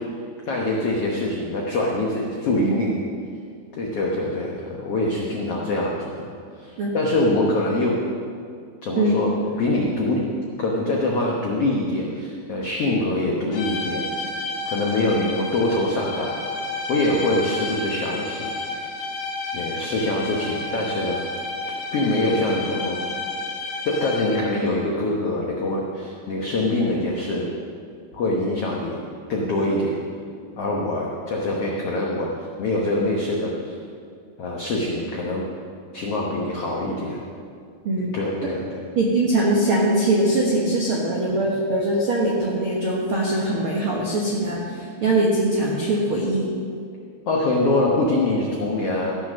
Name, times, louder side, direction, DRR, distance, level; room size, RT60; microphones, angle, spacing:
voice 1, 0.5-3.0 3.8-6.3 6.6-7.9 8.8-10.2 10.6-14.1 14.6-16.4 16.9-18.9 19.5-21.2 21.9-23.0 23.8-27.4 28.1-29.0 29.3-30.0 30.6-32.3 32.6-33.7 34.4-35.4 35.9-37.2 38.1-38.8 47.3-49.2, left 2 dB, 90° left, -2 dB, 1.3 m, -24 dB
sound 1, 13.5-24.6, left 2 dB, 65° left, 2.8 m, -31 dB
voice 2, 39.0-46.5, right 1 dB, 75° right, -3 dB, 1.2 m, -22 dB
15.0 x 6.3 x 6.2 m, 2.3 s
omnidirectional pair, 4.5 m